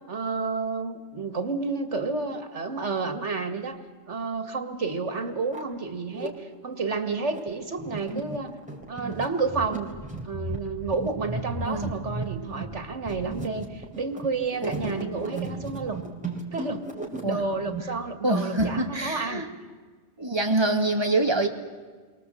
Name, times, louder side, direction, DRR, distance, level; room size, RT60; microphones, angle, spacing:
voice 1, 0.1-3.8 4.1-8.6 8.9-9.9 10.2-16.0 16.5-16.8 17.2-19.5, right 4 dB, 80° right, 7 dB, 2.3 m, -30 dB
sound 1, 4.9-5.0 5.3-6.3 6.9-17.8, right 3 dB, 5° right, 3.5 m, -35 dB
voice 2, 14.6-15.2 17.2-17.4 18.2-19.5 20.2-21.5, right 2 dB, 20° right, 3 dB, 2.2 m, -25 dB
29.0 x 23.5 x 7.9 m, 1.4 s
omnidirectional pair, 1.2 m